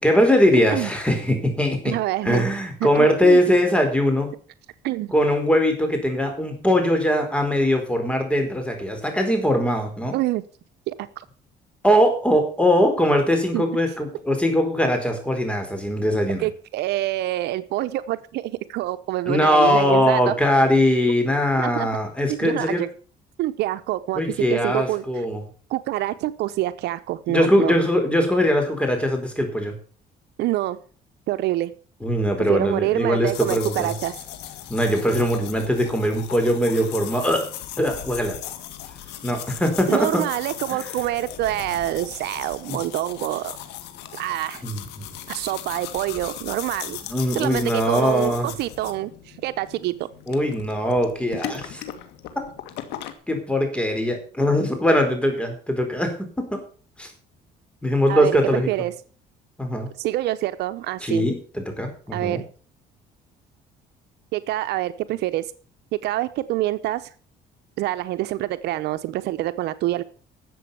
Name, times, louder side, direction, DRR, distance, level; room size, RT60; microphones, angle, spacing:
voice 1, 0.0-2.0 2.2-4.3 5.1-10.1 11.8-16.5 19.3-22.8 24.1-25.4 27.3-29.8 32.0-33.9 34.7-37.4 37.8-38.4 39.2-40.2 40.7-40.8 42.7-42.8 44.6-45.0 47.1-48.5 50.3-51.8 53.3-56.6 57.0-57.1 57.8-58.7 59.6-59.9 61.0-62.4, equal, 5° left, 4 dB, 4.5 m, -21 dB
voice 2, 1.8-2.4 2.8-3.4 4.8-5.1 10.1-10.4 10.9-11.1 13.5-13.7 16.4-20.3 21.6-21.9 22.4-22.9 23.4-24.2 24.5-25.0 25.7-27.8 30.4-30.8 31.3-31.7 32.5-34.2 39.9-43.6 44.1-44.6 45.3-47.0 47.3-49.1 49.4-49.9 58.1-58.9 60.0-61.3 62.1-62.4 64.3-65.4 66.0-67.1 67.8-70.0, right 15 dB, 80° right, 12 dB, 0.8 m, -26 dB
sound 1, 33.3-53.1, left 11 dB, 85° left, 1.8 m, -38 dB
12.5 x 7.8 x 7.1 m, 0.41 s
cardioid pair, 110°, 17 cm